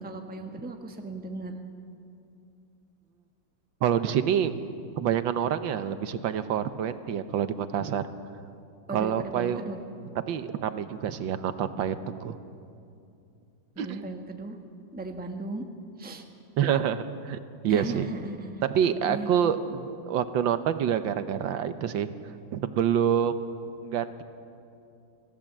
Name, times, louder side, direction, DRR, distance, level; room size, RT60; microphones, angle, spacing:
voice 1, 0.0-1.6 8.9-9.8 13.7-14.6 14.9-15.6 16.0-16.2 17.7-18.6 19.0-19.5, right 2 dB, 5° right, 4 dB, 1.1 m, -36 dB
voice 2, 3.8-4.5 5.0-8.1 8.9-9.6 10.3-12.4 13.8-14.0 16.6-18.1 18.7-22.1 22.5-23.4 23.8-24.2, right 9 dB, 80° right, 11 dB, 1.7 m, -27 dB
26.0 x 16.5 x 7.4 m, 2.5 s
omnidirectional pair, 2.1 m